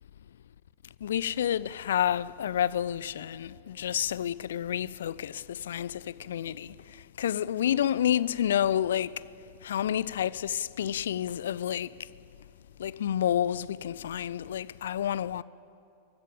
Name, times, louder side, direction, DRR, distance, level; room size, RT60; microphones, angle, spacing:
voice 1, 1.0-6.7 7.2-9.2 9.6-11.9 12.8-15.4, left 10 dB, 60° left, 0.4 m, -29 dB
27.0 x 15.0 x 8.8 m
figure-of-eight pair, 90°, 0 cm